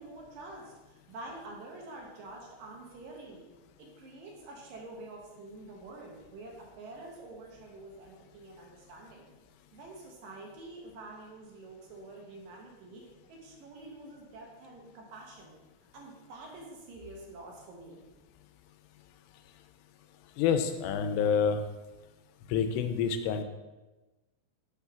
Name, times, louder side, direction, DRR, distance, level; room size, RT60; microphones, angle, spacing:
voice 1, 0.0-3.4 3.8-9.3 9.7-13.0 13.3-15.6 15.9-18.0, right 2 dB, 70° right, -1 dB, 2.3 m, -47 dB
voice 2, 20.4-21.6 22.5-23.4, left 7 dB, 85° left, 8 dB, 2.7 m, -27 dB
6.8 x 3.5 x 5.6 m, 1.1 s
omnidirectional pair, 4.9 m